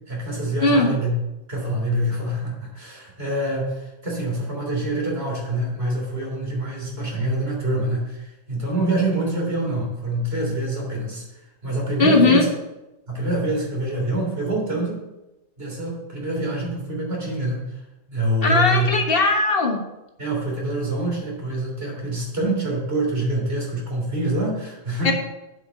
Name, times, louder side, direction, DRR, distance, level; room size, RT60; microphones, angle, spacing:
voice 1, 0.1-1.1 1.5-11.2 11.6-12.5 13.1-15.0 15.6-17.8 18.1-18.9 20.2-25.1, right 1 dB, 50° right, -2 dB, 3.4 m, -25 dB
voice 2, 12.0-12.4 18.4-19.8 25.0-25.1, left 3 dB, 45° left, 2 dB, 1.5 m, -18 dB
8.0 x 5.9 x 6.8 m, 0.98 s
omnidirectional pair, 1.4 m